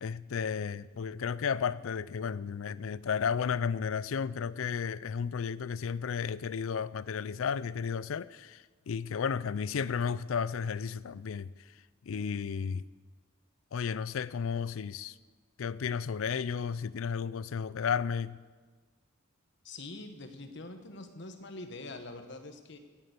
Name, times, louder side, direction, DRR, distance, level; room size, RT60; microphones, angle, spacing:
voice 1, 0.0-11.5 12.1-12.8 13.7-15.1 15.6-18.4, left 6 dB, 85° left, 0.4 m, -33 dB
voice 2, 19.6-22.8, left 2 dB, 60° left, 1.3 m, -44 dB
11.0 x 9.8 x 8.0 m
head